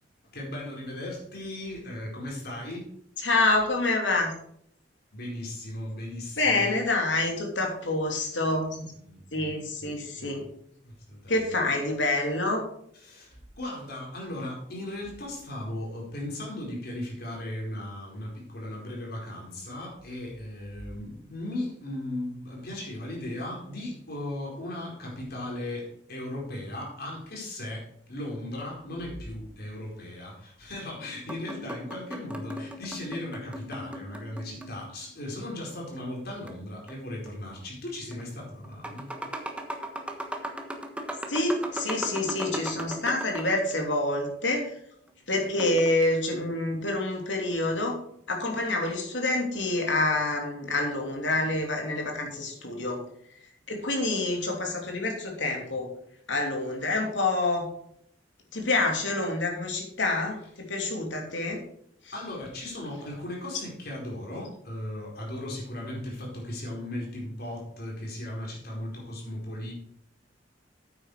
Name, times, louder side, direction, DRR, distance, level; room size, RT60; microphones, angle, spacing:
voice 1, 0.3-2.9 5.1-6.8 9.0-10.3 10.8-11.5 13.0-39.2 62.1-69.7, left 1 dB, 60° left, -2 dB, 4.6 m, -37 dB
voice 2, 3.2-4.3 6.4-8.9 9.3-10.4 11.3-12.7 41.3-44.8 45.3-48.0 48.3-53.0 53.7-55.9 56.3-57.7 58.5-61.6, left 2 dB, 85° left, 1 dB, 3.0 m, -27 dB
sound 1, 31.3-35.0 36.5-37.3 38.1-38.2 38.6-43.7 45.4-46.1, right 1 dB, 5° right, 1.3 m, -38 dB
9.2 x 9.0 x 5.0 m, 0.68 s
head